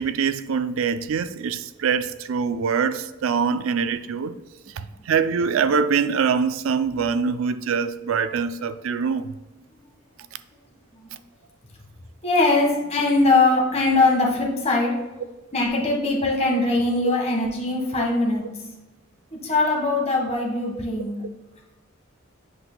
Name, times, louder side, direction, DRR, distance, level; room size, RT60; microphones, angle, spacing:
voice 1, 0.0-4.4 4.8-9.3 17.0-17.1 18.0-18.1, right 6 dB, 70° right, 0.4 m, -24 dB
voice 2, 12.2-14.9 15.5-18.4 19.3-21.2, left 2 dB, 35° left, 1.4 m, -21 dB
8.1 x 5.7 x 2.2 m
head